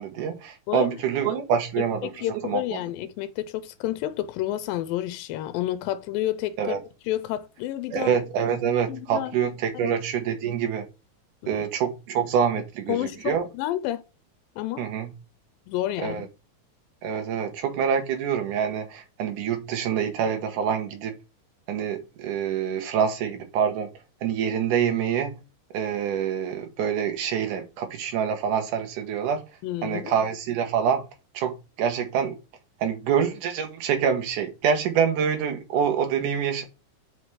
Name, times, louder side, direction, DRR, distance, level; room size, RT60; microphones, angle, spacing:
voice 1, 0.0-2.8 6.6-6.8 7.9-10.9 11.5-13.5 14.8-15.1 16.0-16.3 17.0-21.1 21.7-23.9 24.2-25.4 25.7-29.4 29.8-31.0 31.3-32.3 32.8-36.6, right 7 dB, 70° right, 2.5 m, -26 dB
voice 2, 2.0-6.8 7.1-8.1 8.9-9.3 9.8-9.9 11.4-11.6 12.9-14.0 14.6-14.9 15.7-16.3 29.6-30.2, left 13 dB, 85° left, 2.4 m, -30 dB
5.6 x 5.1 x 4.8 m
omnidirectional pair, 4.1 m